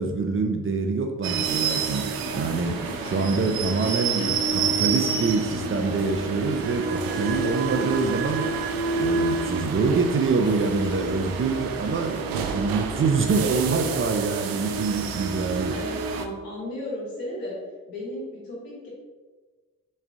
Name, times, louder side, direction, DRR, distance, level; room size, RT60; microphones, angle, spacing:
voice 1, 0.0-8.5 9.0-15.7, right 4 dB, 35° right, 4 dB, 0.6 m, -25 dB
sound 1, 1.2-16.3, right 4 dB, 80° right, 0.5 m, -28 dB
sound 2, 2.2-12.2, left 1 dB, 35° left, 0.9 m, -41 dB
voice 2, 15.6-17.6 17.8-18.9, left 1 dB, 85° left, -5 dB, 1.4 m, -34 dB
3.5 x 3.3 x 3.4 m, 1.3 s
supercardioid pair, 45°, 35 cm